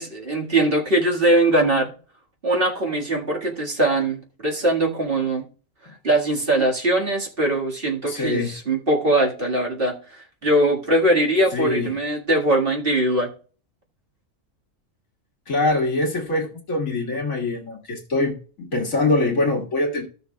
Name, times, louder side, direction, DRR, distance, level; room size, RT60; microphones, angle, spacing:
voice 1, 0.0-1.9 2.4-5.4 6.0-13.3, right 1 dB, 40° right, -1 dB, 2.0 m, -21 dB
voice 2, 8.1-8.6 11.5-11.9 15.5-20.0, left 2 dB, 65° left, -1 dB, 2.2 m, -23 dB
15.0 x 6.6 x 2.3 m, 0.39 s
omnidirectional pair, 1.5 m